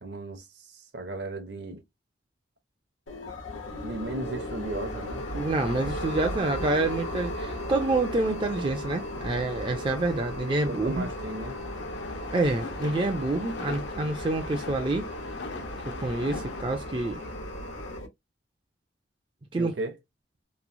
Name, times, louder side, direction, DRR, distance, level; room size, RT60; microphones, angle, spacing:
voice 1, 0.0-1.8 3.8-5.3 10.6-11.6 19.6-20.0, right 2 dB, 60° right, 0.7 m, -36 dB
sound 1, 3.1-18.1, left 1 dB, 85° left, 1.0 m, -36 dB
voice 2, 5.3-11.1 12.3-15.1 16.0-17.2 19.5-19.7, right 2 dB, 25° right, 0.4 m, -27 dB
sound 2, 11.0-16.6, left 4 dB, 70° left, 0.6 m, -41 dB
3.0 x 2.0 x 2.5 m
head